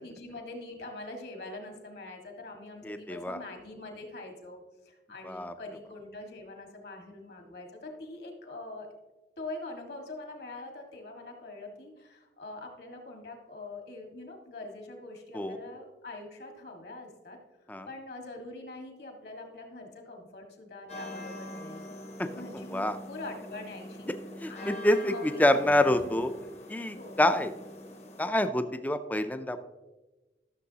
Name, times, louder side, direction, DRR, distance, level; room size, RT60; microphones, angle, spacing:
voice 1, 0.0-8.9 9.4-17.4 17.9-21.8 22.2-24.1 24.5-25.6 25.9-26.2 27.0-27.3, left 2 dB, 60° left, 3 dB, 1.7 m, -44 dB
voice 2, 2.8-3.4 5.2-5.5 15.3-15.6 17.7-17.9 22.2-22.3 22.5-23.0 24.4-26.3 26.7-27.5 28.2-29.6, left 1 dB, 10° left, 9 dB, 0.4 m, -27 dB
sound 1, 20.9-28.3, left 1 dB, 35° left, 0.9 m, -44 dB
14.0 x 6.9 x 2.8 m, 1.1 s
head